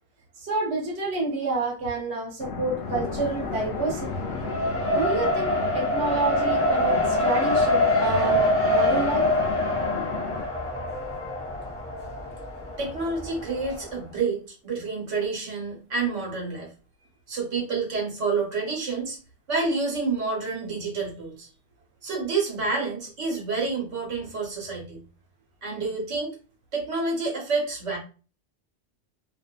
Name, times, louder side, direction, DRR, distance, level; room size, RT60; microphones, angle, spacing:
voice 1, 0.4-4.1 4.9-9.3, right 2 dB, 65° right, -3 dB, 1.1 m, -29 dB
sound 1, 2.4-10.4, left 4 dB, 75° left, 0.8 m, -34 dB
Race car auto racing, 2.8-13.8, left 1 dB, 15° left, 0.6 m, -25 dB
voice 2, 12.8-16.7 17.3-19.2 19.5-21.5 22.0-25.0 25.6-26.3 26.7-28.0, right 4 dB, 85° right, -2 dB, 1.3 m, -28 dB
2.6 x 2.5 x 2.3 m, 0.36 s
omnidirectional pair, 1.2 m